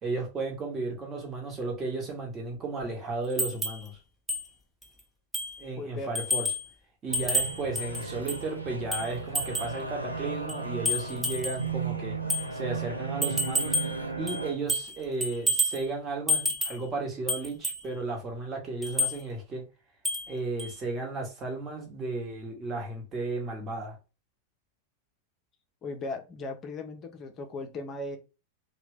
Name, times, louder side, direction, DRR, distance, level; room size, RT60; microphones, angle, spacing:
voice 1, 0.0-3.9 5.6-6.5 7.0-12.2 12.5-13.7 14.2-19.6 20.3-23.9, right 3 dB, 25° right, 1.1 m, -34 dB
sound 1, 3.4-3.8 4.3-4.4 4.8-4.9 5.3-5.6 6.1-6.7 7.1-8.5 8.9-9.8 10.5-11.6 12.3-12.5 13.2-14.0 14.3-15.0 15.2-15.8 16.3-16.8 17.3-17.8 18.8-19.2 20.0-20.3 20.6-20.7, equal, 5° right, 0.7 m, -29 dB
voice 2, 5.8-6.1 25.8-28.2, left 2 dB, 30° left, 0.6 m, -37 dB
sound 2, 7.1-14.5, right 4 dB, 85° right, 0.6 m, -35 dB
2.8 x 2.2 x 3.3 m
figure-of-eight pair, 90°, 0 cm